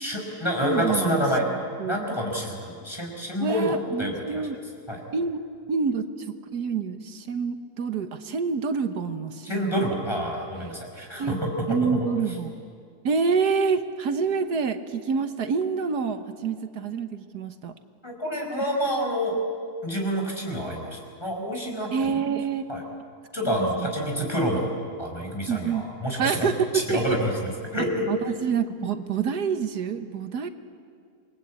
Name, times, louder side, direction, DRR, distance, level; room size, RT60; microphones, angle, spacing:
voice 1, 0.0-1.5 1.8-4.5 4.9-5.0 9.4-12.0 18.0-19.4 19.8-22.1 22.7-22.8 23.3-28.1 28.8-28.9, equal, 15° left, 0 dB, 5.2 m, -28 dB
voice 2, 0.6-1.2 1.8-2.0 3.4-4.6 5.1-5.4 5.7-9.9 11.2-11.3 11.7-12.6 13.0-17.7 21.9-22.6 23.4-23.9 25.5-25.8 26.2-27.2 28.1-30.5, right 5 dB, 90° right, 8 dB, 1.8 m, -27 dB
28.0 x 22.0 x 8.4 m, 2.2 s
omnidirectional pair, 1.6 m